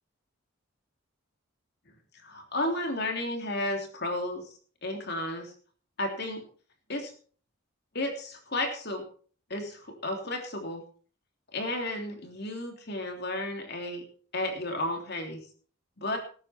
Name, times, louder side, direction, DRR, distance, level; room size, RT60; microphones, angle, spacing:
voice 1, 2.2-4.5 4.8-5.5 6.0-6.4 6.9-7.1 7.9-9.0 9.5-10.8 11.5-14.0 14.3-15.4 16.0-16.2, left 1 dB, 50° left, 3 dB, 3.3 m, -33 dB
19.5 x 9.6 x 4.5 m, 0.43 s
head